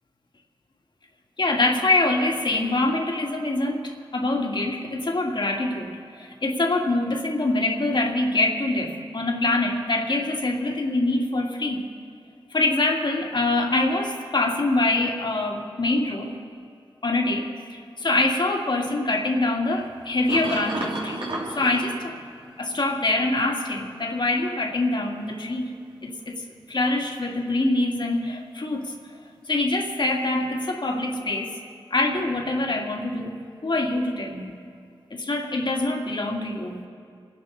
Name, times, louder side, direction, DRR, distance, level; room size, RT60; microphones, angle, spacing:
voice 1, 1.4-11.9 12.5-16.3 17.0-21.2 21.5-22.2 22.6-25.7 26.0-28.9 29.5-31.6 31.9-34.6 35.1-36.8, left 2 dB, 55° left, 2 dB, 2.3 m, -25 dB
sound 1, 19.7-23.0 23.9-25.0 25.7-26.3 30.4-30.5, right 2 dB, 70° right, 3.0 m, -34 dB
25.0 x 11.0 x 4.1 m, 2.3 s
cardioid pair, 40°, 10 cm